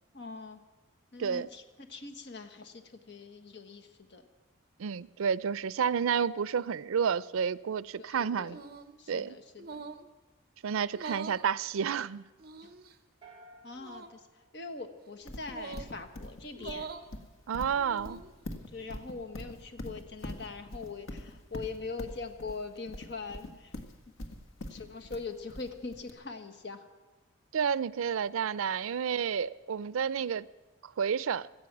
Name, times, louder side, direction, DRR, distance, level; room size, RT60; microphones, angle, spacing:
voice 1, 0.1-0.6 1.1-4.2 8.0-8.6 9.0-9.8 12.6-12.7 13.6-16.9 18.7-23.7 24.7-26.9, left 4 dB, 55° left, 1.4 m, -42 dB
voice 2, 4.8-8.6 9.1-9.4 10.6-12.2 17.5-18.2 27.5-30.5 30.8-31.5, right 7 dB, 85° right, 0.4 m, -30 dB
sound 1, 8.5-9.0 9.6-10.1 10.9-11.5 12.4-12.9 13.8-14.1 15.5-15.9 16.5-17.1 17.8-18.3, right 4 dB, 45° right, 0.8 m, -43 dB
sound 2, 13.2-15.5, right 2 dB, 25° right, 2.9 m, -57 dB
Livestock farm animals working animals, 15.3-26.1, left 1 dB, 75° left, 1.7 m, -43 dB
17.0 x 14.0 x 6.1 m
head